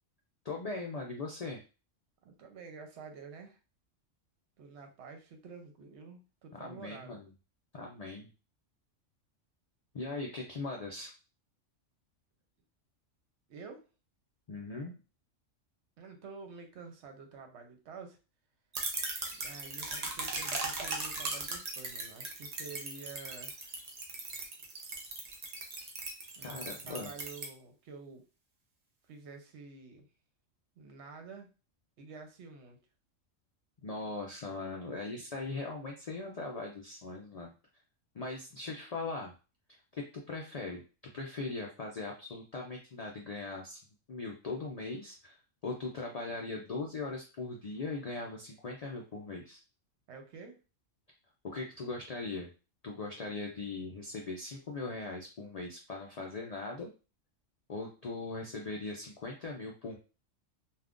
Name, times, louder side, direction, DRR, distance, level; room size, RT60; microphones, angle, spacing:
voice 1, 0.4-1.6 6.5-7.3 7.7-8.3 9.9-11.1 14.5-15.0 26.4-27.1 33.8-37.5 38.1-39.3 39.9-40.8 41.1-43.8 44.1-45.4 45.6-49.6 51.4-52.5 52.8-56.9 57.7-60.0, left 3 dB, 80° left, -1 dB, 0.3 m, -40 dB
voice 2, 2.2-3.6 4.6-7.2 13.5-13.8 16.0-18.2 19.3-23.8 26.4-28.3 29.1-30.1 30.8-31.5 32.0-32.8 50.1-50.6, right 4 dB, 65° right, 5 dB, 0.9 m, -49 dB
sound 1, 18.7-27.5, right 3 dB, 45° right, 0.6 m, -38 dB
2.4 x 2.4 x 3.5 m, 0.33 s
omnidirectional pair, 1.3 m